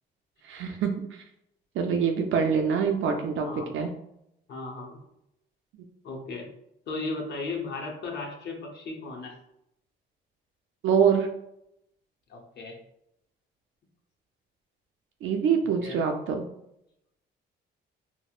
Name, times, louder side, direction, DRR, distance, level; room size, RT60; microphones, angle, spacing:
voice 1, 0.5-1.2 1.8-3.5 3.7-3.9 10.8-11.3 15.2-16.4, right 6 dB, 80° right, 3 dB, 0.4 m, -25 dB
voice 2, 4.5-5.0 6.0-6.5 6.9-9.4 12.3-12.8 15.8-16.0, left 3 dB, 60° left, 0 dB, 0.8 m, -36 dB
4.1 x 2.0 x 2.4 m, 0.80 s
cardioid pair, 90°, 20 cm